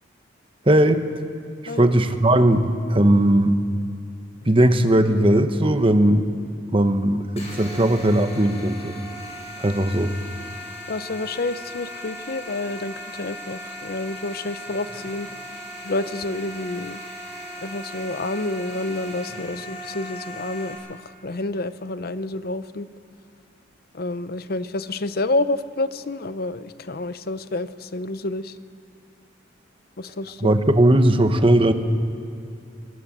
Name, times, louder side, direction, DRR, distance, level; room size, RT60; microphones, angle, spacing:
voice 1, 0.6-1.0 1.6-3.5 4.4-6.3 6.7-9.0 9.6-10.1 30.4-31.7, right 1 dB, 30° right, 8 dB, 1.2 m, -18 dB
sound 1, 7.4-20.7, equal, 35° left, 7.1 m, -37 dB
voice 2, 10.9-17.0 17.6-22.9 23.9-28.6 30.0-30.5, left 2 dB, 55° left, 14 dB, 0.7 m, -29 dB
24.0 x 20.5 x 7.5 m, 2.6 s
head